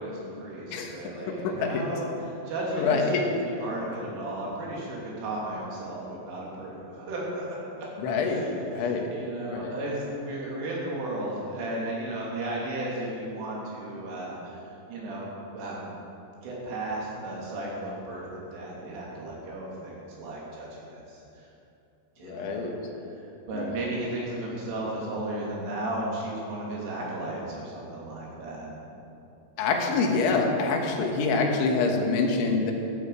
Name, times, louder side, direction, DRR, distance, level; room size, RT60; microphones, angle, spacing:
voice 1, 0.0-2.1 2.5-7.9 8.3-14.6 14.9-15.2 15.5-16.0 16.4-21.2 22.2-22.7 23.5-28.9, right 1 dB, 90° right, -5 dB, 5.5 m, -34 dB
voice 2, 1.3-1.9 2.8-3.3 8.0-8.5 8.7-9.1 9.5-9.7 22.2-22.7 23.5-23.8 29.6-32.7, left 4 dB, 75° left, 2 dB, 3.6 m, -26 dB
14.0 x 13.5 x 5.0 m, 2.8 s
omnidirectional pair, 5.5 m